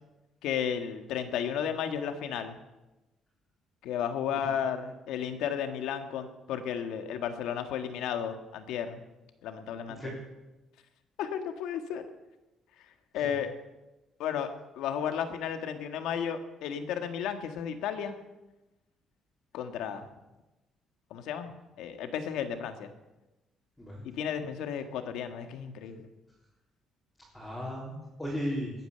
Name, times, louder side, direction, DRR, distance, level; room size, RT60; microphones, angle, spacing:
voice 1, 0.4-2.6 3.8-9.0 9.4-10.0 11.2-12.0 13.1-13.5 14.2-14.5 14.8-18.2 19.5-20.1 21.1-21.5 21.8-22.9 24.0-26.1, left 8 dB, 80° left, 7 dB, 1.7 m, -33 dB
voice 2, 27.3-28.7, equal, 5° left, -6 dB, 4.0 m, -36 dB
21.0 x 9.4 x 6.9 m, 1.0 s
cardioid pair, 160°, 0 cm